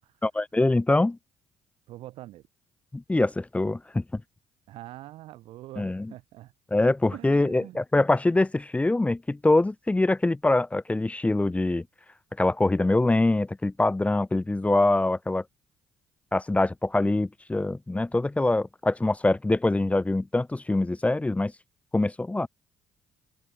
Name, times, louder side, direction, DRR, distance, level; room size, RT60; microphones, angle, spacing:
voice 1, 0.2-1.2 2.9-4.2 5.8-6.1 6.7-11.8 12.4-15.4 16.3-21.5 21.9-22.5, left 2 dB, 15° left, 0.6 m, -24 dB
voice 2, 1.9-2.4 4.7-6.5 7.1-7.8, right 15 dB, 75° right, 7.8 m, -44 dB
open air
hypercardioid pair, 55°, 9 cm